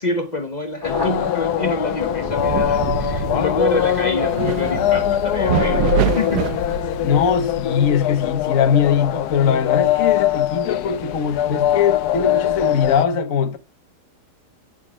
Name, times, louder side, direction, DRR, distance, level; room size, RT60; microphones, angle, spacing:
voice 1, 0.0-6.6, left 2 dB, 30° left, 0.9 m, -26 dB
sound 1, 0.8-13.1, left 12 dB, 75° left, 1.2 m, -22 dB
Thunder, 0.8-7.9, left 1 dB, 15° left, 1.5 m, -33 dB
sound 2, 2.3-7.5, right 11 dB, 75° right, 1.3 m, -26 dB
voice 2, 7.0-13.6, left 7 dB, 55° left, 1.4 m, -20 dB
9.3 x 6.4 x 6.2 m
omnidirectional pair, 1.8 m